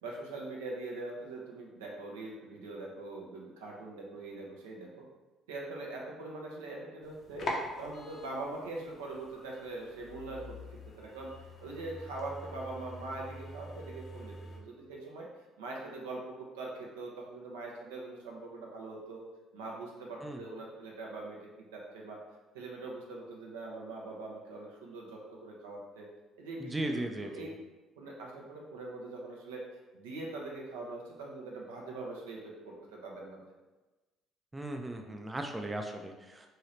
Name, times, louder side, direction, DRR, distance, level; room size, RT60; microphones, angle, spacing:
voice 1, 0.0-5.1 5.5-7.5 7.8-11.3 11.6-15.3 15.6-19.2 19.5-21.4 21.7-22.2 22.5-26.1 26.4-27.5 28.0-29.6 29.9-33.4, right 2 dB, 80° right, -2 dB, 0.6 m, -42 dB
sound 1, 7.0-14.6, left 1 dB, 50° left, 0.6 m, -44 dB
voice 2, 26.6-27.3 34.5-36.5, right 1 dB, 15° right, 4 dB, 0.4 m, -37 dB
2.7 x 2.7 x 3.1 m, 1.2 s
hypercardioid pair, 50°, 0 cm